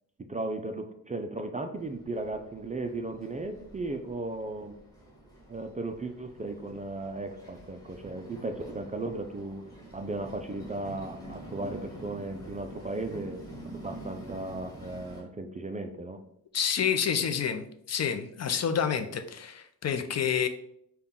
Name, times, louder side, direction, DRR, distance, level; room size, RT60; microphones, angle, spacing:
voice 1, 0.3-4.7 5.5-9.6 9.9-13.4 13.7-16.2, right 2 dB, 20° right, 5 dB, 0.4 m, -36 dB
Train, 1.8-15.2, right 1 dB, 10° left, 1.8 m, -47 dB
voice 2, 16.5-20.5, left 7 dB, 45° left, 7 dB, 0.5 m, -28 dB
5.6 x 2.3 x 3.6 m, 0.71 s
cardioid pair, 95°, 36 cm